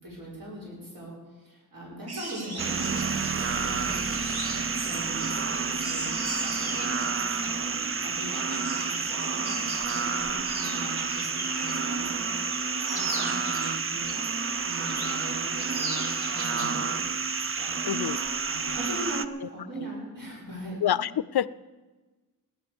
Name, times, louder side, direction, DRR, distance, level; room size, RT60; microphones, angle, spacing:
voice 1, 0.0-4.0 4.4-14.2 14.6-17.0 17.6-17.8 18.4-20.8, right 1 dB, 60° right, -5 dB, 6.1 m, -41 dB
sound 1, 2.1-11.9 12.2-14.1 14.5-15.3 15.6-16.8 17.1-17.3, right 2 dB, 75° right, 2.3 m, -39 dB
sound 2, 2.6-19.2, right 5 dB, 35° right, 0.5 m, -30 dB
voice 2, 17.8-18.2 19.8-19.9 20.8-21.5, left 10 dB, 75° left, 18 dB, 0.5 m, -26 dB
17.0 x 11.0 x 7.1 m, 1.2 s
wide cardioid pair, 125°, 38 cm